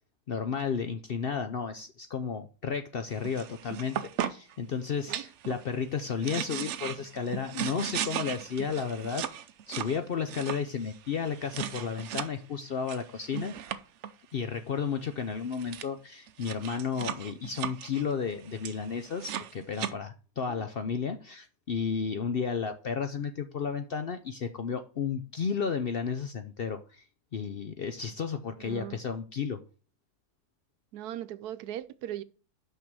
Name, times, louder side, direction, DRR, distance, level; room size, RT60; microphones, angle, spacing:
voice 1, 0.3-4.0 4.3-9.2 9.7-13.5 14.3-27.0 27.3-29.6, left 6 dB, 55° left, 0.6 m, -33 dB
sound 1, 3.1-4.5 5.1-5.6 6.0-12.3 12.9-14.1 15.1-15.2 15.4-15.9 16.3-19.9, right 10 dB, 65° right, 0.8 m, -37 dB
voice 2, 28.5-29.0 30.9-32.2, right 12 dB, 85° right, 1.2 m, -39 dB
6.0 x 5.7 x 6.1 m
omnidirectional pair, 1.6 m